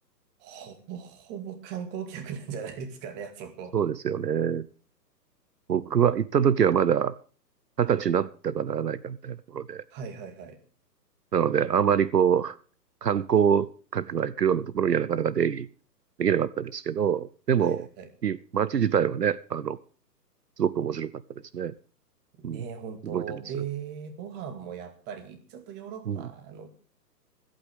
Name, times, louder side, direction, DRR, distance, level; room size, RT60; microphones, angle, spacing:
voice 1, 0.4-3.7 9.9-10.6 17.6-18.1 22.4-26.7, right 7 dB, 20° right, 8 dB, 2.1 m, -38 dB
voice 2, 3.7-4.7 5.7-7.1 7.8-9.8 11.3-12.6 13.0-15.7 16.2-17.9 18.2-19.8 20.6-21.1 21.5-21.7 22.4-22.6 23.0-23.2 26.1-26.3, right 8 dB, 70° right, 18 dB, 0.8 m, -25 dB
26.0 x 9.0 x 3.5 m, 0.39 s
figure-of-eight pair, 130°, 50 cm